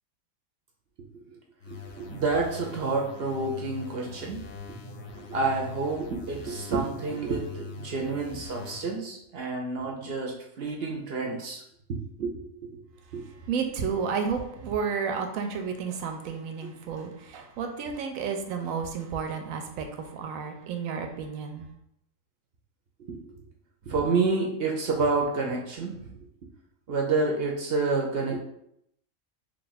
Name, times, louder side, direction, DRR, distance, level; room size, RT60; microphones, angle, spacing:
sound 1, 1.6-9.0, left 4 dB, 85° left, 1.1 m, -42 dB
voice 1, 1.7-4.4 5.1-11.6 11.9-12.3 12.6-12.8 13.1-13.2 16.6-16.7 23.1-23.2 23.9-26.1 26.9-28.4, right 3 dB, 55° right, 0 dB, 0.7 m, -29 dB
voice 2, 13.2-21.7, right 6 dB, 85° right, 5 dB, 1.0 m, -32 dB
3.2 x 2.4 x 4.0 m, 0.75 s
omnidirectional pair, 1.4 m